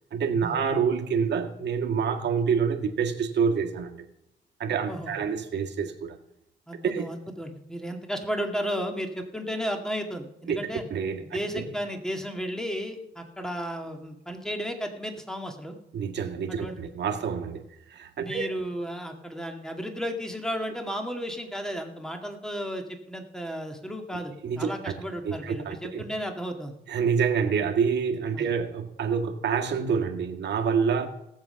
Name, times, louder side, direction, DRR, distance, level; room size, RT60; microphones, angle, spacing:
voice 1, 0.1-4.1 4.6-6.2 6.8-7.0 10.5-10.6 10.9-11.2 11.5-11.6 15.9-17.7 17.9-18.5 24.4-24.9 25.2-26.0 26.9-31.1, right 6 dB, 60° right, 1.9 m, -27 dB
voice 2, 6.7-10.8 11.2-15.8 16.5-16.8 18.2-26.8 28.3-28.5, equal, 5° left, 2.2 m, -34 dB
18.0 x 7.5 x 5.8 m
cardioid pair, 90°, 20 cm